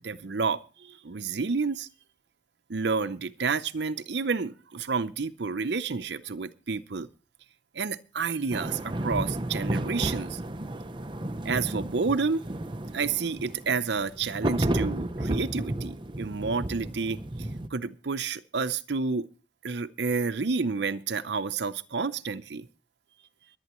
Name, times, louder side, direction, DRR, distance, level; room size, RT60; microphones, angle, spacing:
voice 1, 0.0-1.9 2.7-7.1 7.7-10.4 11.4-12.4 12.9-17.2 17.7-19.3 19.6-22.7, right 4 dB, 70° right, 11 dB, 0.7 m, -30 dB
sound 1, 8.5-17.7, right 1 dB, 25° right, 0.6 m, -32 dB
24.5 x 9.1 x 3.0 m, 0.36 s
head